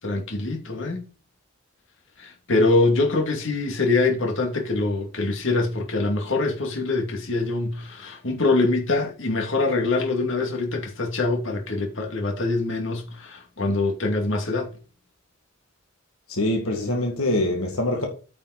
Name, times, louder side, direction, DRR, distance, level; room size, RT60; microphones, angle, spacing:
voice 1, 0.0-1.1 2.2-14.7, left 3 dB, 65° left, 2.3 m, -24 dB
voice 2, 16.3-18.1, left 1 dB, 80° left, 1.8 m, -24 dB
9.3 x 5.6 x 4.1 m
head